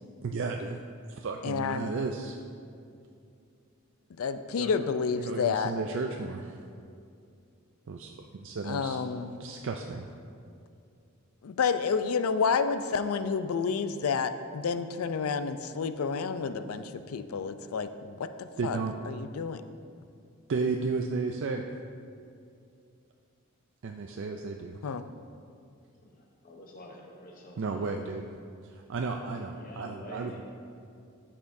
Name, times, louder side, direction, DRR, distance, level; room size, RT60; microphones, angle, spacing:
voice 1, 0.2-0.8 1.2-2.4 4.6-4.7 5.2-6.6 7.9-9.0 9.4-10.1 18.6-18.9 20.5-21.6 23.8-24.8 27.6-28.2 28.9-30.4, right 4 dB, 60° right, 3 dB, 0.4 m, -33 dB
voice 2, 1.4-1.9 4.2-5.7 8.7-9.3 11.4-18.8 19.1-19.6 24.8-25.0, left 5 dB, 85° left, 11 dB, 0.4 m, -30 dB
voice 3, 26.1-27.8 29.5-30.4, left 1 dB, 40° left, 0 dB, 0.8 m, -47 dB
12.5 x 7.5 x 2.6 m, 2.4 s
head